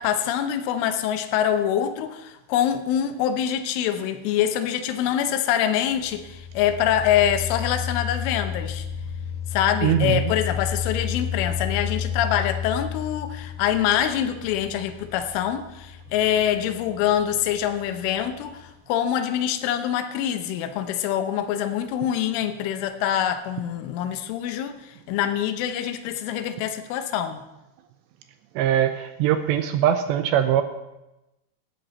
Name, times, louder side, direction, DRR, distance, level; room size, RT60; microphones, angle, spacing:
voice 1, 0.0-8.9 9.5-27.4, left 10 dB, 85° left, 8 dB, 3.4 m, -25 dB
sound 1, 5.9-18.7, left 8 dB, 50° left, 4.6 m, -32 dB
voice 2, 9.8-10.3 28.6-30.6, right 10 dB, 80° right, 8 dB, 2.6 m, -21 dB
18.0 x 13.5 x 4.2 m, 0.96 s
omnidirectional pair, 5.5 m